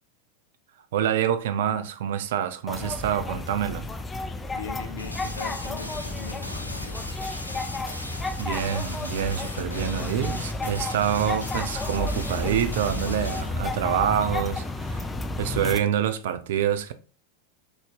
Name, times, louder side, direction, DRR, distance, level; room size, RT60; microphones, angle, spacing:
voice 1, 0.9-3.9 8.4-15.1 15.4-16.9, right 9 dB, 55° right, 0.4 m, -26 dB
sound 1, 2.7-15.8, left 2 dB, 15° left, 0.3 m, -32 dB
voice 2, 4.5-7.1, left 5 dB, 60° left, 0.7 m, -39 dB
sound 2, 5.0-13.5, left 1 dB, 85° left, 0.4 m, -39 dB
4.0 x 3.1 x 2.4 m
figure-of-eight pair, 90°, 0 cm